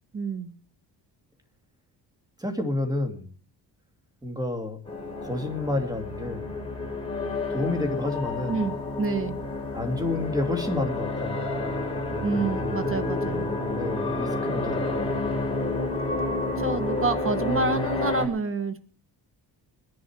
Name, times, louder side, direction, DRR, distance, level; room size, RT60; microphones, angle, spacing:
voice 1, 0.1-0.6 8.5-9.4 12.2-13.5 16.6-18.8, right 4 dB, 30° right, 11 dB, 1.6 m, -28 dB
voice 2, 2.4-3.3 4.2-4.8 5.2-6.5 7.5-8.6 9.7-11.4 13.7-15.1, left 2 dB, 10° right, 6 dB, 2.7 m, -30 dB
sound 1, 4.9-18.3, left 2 dB, 15° left, 4.3 m, -29 dB
20.5 x 11.0 x 4.8 m, 0.42 s
cardioid pair, 115°, 42 cm